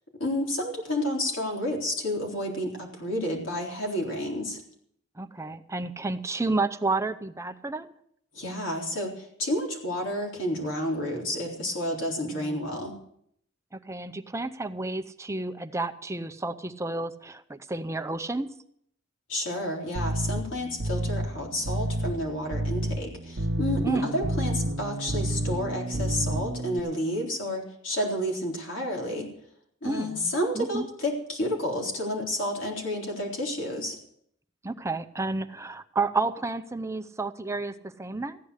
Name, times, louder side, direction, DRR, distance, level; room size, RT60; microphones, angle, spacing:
voice 1, 0.2-4.6 8.3-12.9 19.3-29.3 29.8-34.0, left 1 dB, 70° left, -1 dB, 3.8 m, -30 dB
voice 2, 5.2-7.9 12.3-12.8 13.9-18.5 23.8-24.2 29.8-30.9 34.6-38.4, right 3 dB, 15° right, 9 dB, 0.6 m, -31 dB
sound 1, 19.9-26.8, right 1 dB, 60° right, 0.8 m, -30 dB
15.0 x 9.9 x 6.5 m, 0.68 s
head